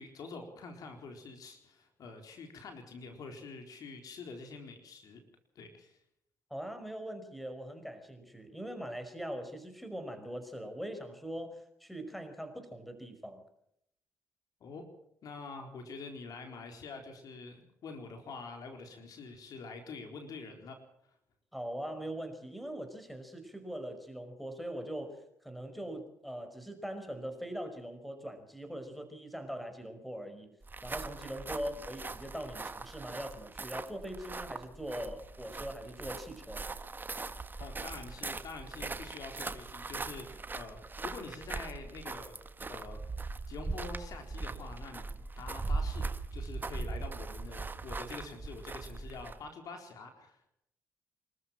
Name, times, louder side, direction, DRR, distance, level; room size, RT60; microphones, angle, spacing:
voice 1, 0.0-5.2 5.6-6.0 14.6-14.8 15.2-20.8 37.6-42.4 42.7-43.0 43.5-50.5, left 4 dB, 60° left, 4 dB, 4.1 m, -46 dB
voice 2, 6.5-13.4 21.5-30.6 30.8-36.6, equal, ahead, 8 dB, 5.3 m, -41 dB
sound 1, 30.6-49.5, right 3 dB, 30° right, 1.6 m, -40 dB
26.0 x 14.0 x 7.6 m, 0.77 s
hypercardioid pair, 55°, 7 cm